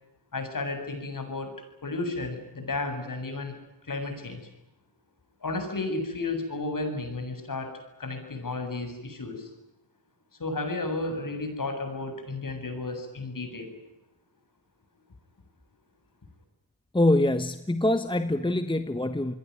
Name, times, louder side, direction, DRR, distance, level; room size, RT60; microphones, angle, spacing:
voice 1, 0.3-1.6 1.8-3.5 3.9-4.4 5.4-7.7 8.0-9.5 10.4-13.7, left 2 dB, 45° left, 6 dB, 7.8 m, -33 dB
voice 2, 16.9-19.3, left 1 dB, 10° left, 10 dB, 1.2 m, -24 dB
28.5 x 21.5 x 9.6 m, 0.94 s
wide cardioid pair, 95°, 45 cm